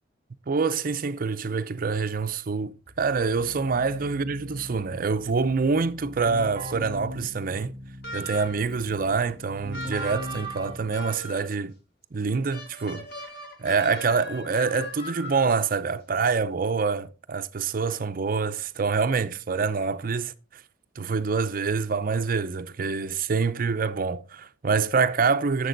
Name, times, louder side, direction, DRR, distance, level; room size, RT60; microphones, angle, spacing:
voice 1, 0.5-7.7 8.1-11.7 12.1-13.1 13.6-20.6 21.0-25.7, right 5 dB, 50° right, 0.6 m, -26 dB
Keyboard (musical), 2.9-11.2, equal, 35° right, 1.7 m, -40 dB
sound 1, 8.0-8.7 9.7-11.6 12.5-15.7, equal, 60° left, 2.5 m, -39 dB
11.0 x 7.2 x 3.9 m
head